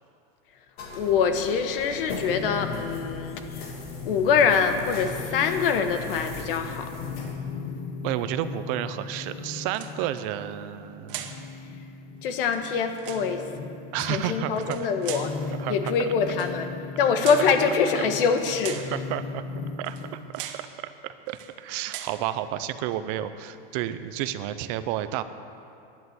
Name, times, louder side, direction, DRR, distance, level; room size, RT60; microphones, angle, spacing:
sound 1, 0.8-7.4, left 3 dB, 85° left, 2.7 m, -40 dB
voice 1, 1.0-3.7 4.0-6.9 12.2-13.5 14.0-15.3 15.7-16.7 17.0-18.9, left 6 dB, 70° left, 7 dB, 1.4 m, -24 dB
sound 2, 2.3-20.3, left 5 dB, 30° left, 0.8 m, -38 dB
voice 2, 8.0-11.5 13.9-14.9 15.5-15.8 18.9-19.4 19.8-20.0 20.3-20.7 21.0-25.2, right 12 dB, 35° right, 12 dB, 0.5 m, -31 dB
sound 3, 9.7-10.2 11.1-11.4 12.4-13.3 14.5-15.4 16.3-16.6 17.2-17.6 18.4-19.0 19.8-20.1 20.3-20.7 21.3-21.5 21.9-22.2, right 10 dB, 65° right, 1.3 m, -39 dB
12.5 x 10.5 x 7.9 m, 2.6 s
supercardioid pair, 170°, 29 cm